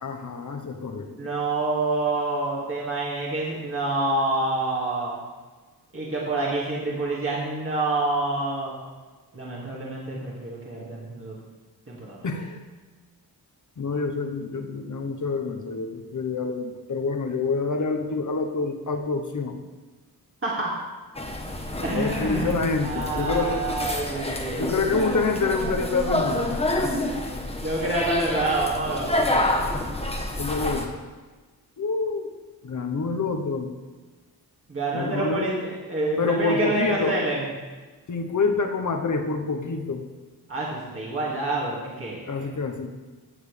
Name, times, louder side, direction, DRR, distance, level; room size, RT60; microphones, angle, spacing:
voice 1, 0.0-1.2 12.2-12.6 13.8-19.6 21.9-23.6 24.6-26.9 30.4-30.9 31.8-32.3 32.6-33.7 34.9-35.5 36.2-37.2 38.1-40.1 42.3-42.9, left 4 dB, 50° left, 5 dB, 1.1 m, -27 dB
voice 2, 0.9-5.2 5.9-8.8 9.3-11.3 11.9-12.3 20.4-20.7 21.8-22.5 22.8-24.8 27.6-29.4 34.7-37.4 40.5-42.5, right 2 dB, 35° right, -5 dB, 2.3 m, -27 dB
sound 1, 21.1-30.9, left 1 dB, 15° left, 1.1 m, -28 dB
17.0 x 7.1 x 3.4 m, 1.3 s
wide cardioid pair, 100°, 38 cm